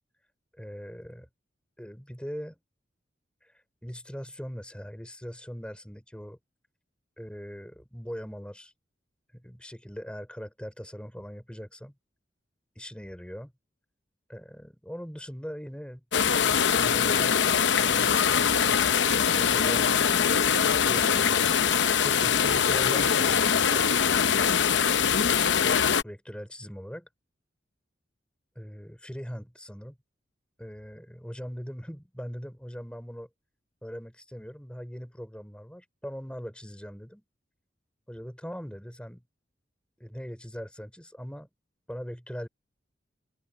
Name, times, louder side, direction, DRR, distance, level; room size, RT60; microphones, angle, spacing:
voice 1, 0.5-1.3 1.8-2.6 3.4-6.4 7.2-8.7 9.3-11.9 12.8-13.5 14.3-16.1 16.5-18.9 19.3-20.2 20.7-21.5 22.0-24.1 26.0-27.1 28.6-30.0 30.6-33.3 33.8-37.2 38.1-39.2 40.0-41.5 41.9-42.5, equal, 5° left, 5.5 m, -41 dB
sound 1, 16.1-26.0, left 7 dB, 75° left, 0.7 m, -23 dB
open air
head